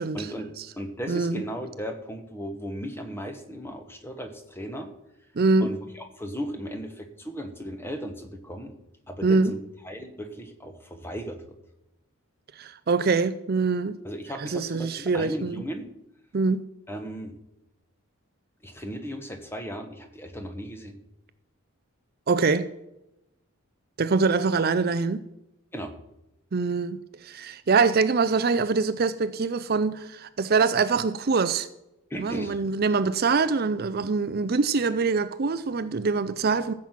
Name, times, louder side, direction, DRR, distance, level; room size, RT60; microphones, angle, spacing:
voice 1, 0.1-4.9 5.6-8.7 9.1-11.5 14.0-15.9 16.9-17.4 18.6-21.0 25.7-25.9 32.1-32.6, equal, 10° left, 1.3 m, -36 dB
voice 2, 1.1-1.4 5.4-5.7 9.2-9.5 12.6-14.0 14.4-15.6 16.3-16.6 22.3-22.7 24.0-25.2 26.5-31.7 32.2-36.7, right 4 dB, 45° right, 0.5 m, -24 dB
15.0 x 7.5 x 5.8 m
head